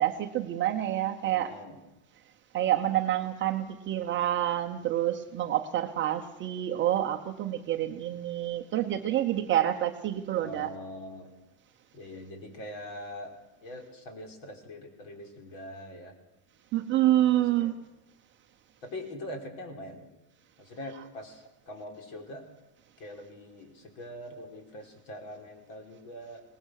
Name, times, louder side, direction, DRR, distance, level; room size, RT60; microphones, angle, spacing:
voice 1, 0.0-1.5 2.5-10.7 16.7-17.7, right 12 dB, 25° right, 4 dB, 0.9 m, -28 dB
voice 2, 1.3-1.8 10.3-11.3 11.9-13.3 13.6-16.1 17.3-17.7 18.8-20.1 20.6-22.4 23.0-26.4, left 1 dB, 45° left, 4 dB, 5.0 m, -43 dB
23.5 x 19.0 x 6.6 m, 0.95 s
supercardioid pair, 160°, 46 cm